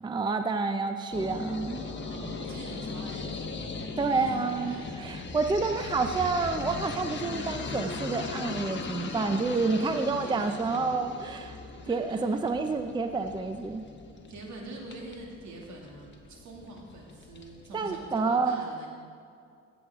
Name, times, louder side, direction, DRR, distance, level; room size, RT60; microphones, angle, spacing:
voice 1, 0.0-1.8 4.0-11.6 11.9-13.8 17.7-18.6, right 4 dB, 15° right, 7 dB, 0.5 m, -29 dB
sound 1, 1.1-18.2, left 4 dB, 40° left, 1.2 m, -39 dB
voice 2, 2.0-5.0 10.2-11.1 11.8-12.2 14.3-18.9, right 2 dB, 70° right, -1 dB, 2.4 m, -44 dB
15.5 x 7.9 x 3.6 m, 2.4 s
cardioid pair, 90°, 30 cm